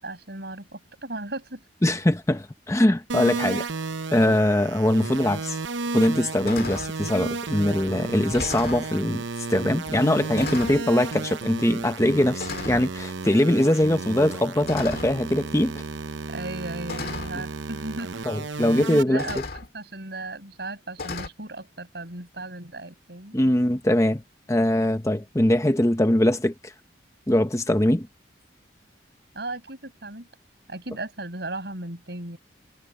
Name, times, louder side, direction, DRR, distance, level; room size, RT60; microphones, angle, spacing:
voice 1, 0.0-1.6 3.5-3.7 16.3-18.3 19.1-23.4 29.3-30.3 30.7-32.4, right 2 dB, 60° right, 6.2 m, -36 dB
voice 2, 1.8-3.6 4.1-5.6 5.9-9.2 9.5-15.8 18.3-19.3 23.3-24.2 24.5-26.7 27.3-28.1, left 1 dB, 15° left, 0.8 m, -22 dB
sound 1, 3.1-19.0, right 3 dB, 80° right, 0.8 m, -33 dB
sound 2, 5.4-5.5 6.0-6.2 6.5-6.9 7.8-7.9 8.2-8.9 9.8-10.0 10.4-10.9 11.8-12.0 12.4-12.9 14.6-15.3 16.3-16.4 16.9-17.4 18.5-18.6 19.2-19.7 21.0-21.3, left 3 dB, 55° left, 2.0 m, -35 dB
head